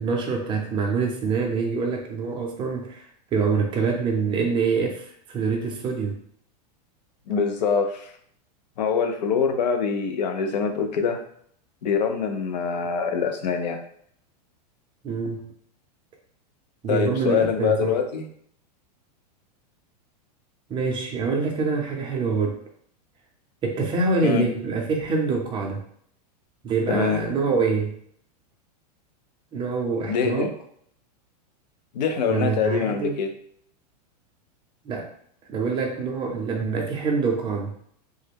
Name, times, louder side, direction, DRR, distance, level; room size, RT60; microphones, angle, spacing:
voice 1, 0.0-6.2 15.0-15.5 16.8-17.9 20.7-22.6 23.6-25.8 26.6-28.0 29.5-30.5 32.3-33.2 34.9-35.1 35.5-37.7, right 4 dB, 25° right, 2 dB, 0.6 m, -25 dB
voice 2, 7.3-8.1 8.8-11.2 11.8-13.8 16.9-18.3 24.2-24.5 26.9-27.2 30.1-30.5 31.9-33.3, left 6 dB, 85° left, 5 dB, 0.7 m, -24 dB
3.3 x 2.1 x 3.4 m, 0.64 s
supercardioid pair, 145°, 21 cm